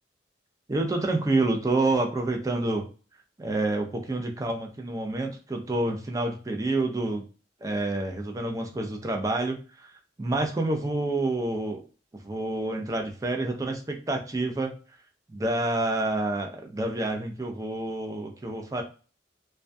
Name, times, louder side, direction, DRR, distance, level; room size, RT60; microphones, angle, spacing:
voice 1, 0.7-2.9 3.4-7.2 7.6-9.9 10.2-11.8 12.2-14.7 15.3-18.8, right 2 dB, 20° right, 3 dB, 0.4 m, -28 dB
2.2 x 2.2 x 2.5 m, 0.36 s
head